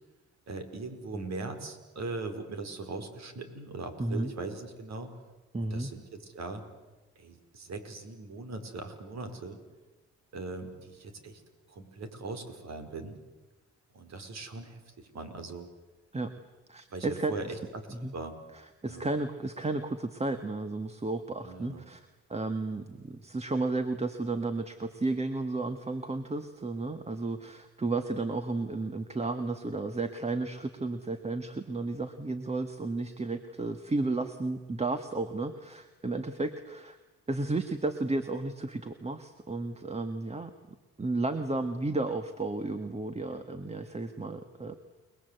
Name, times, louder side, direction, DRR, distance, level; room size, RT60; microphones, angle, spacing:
voice 1, 0.5-5.1 5.6-6.6 7.2-9.6 10.3-11.4 11.7-13.2 13.9-15.7 16.9-17.8 18.1-18.4 18.9-19.1 21.4-21.8, right 3 dB, 60° right, 7 dB, 4.8 m, -40 dB
voice 2, 4.0-4.3 5.5-5.9 16.1-16.3 16.7-17.6 18.0-18.1 18.8-37.0 37.3-40.5 41.0-44.7, right 2 dB, 20° right, 9 dB, 1.7 m, -33 dB
30.0 x 20.5 x 8.1 m, 1.2 s
cardioid pair, 90°, 30 cm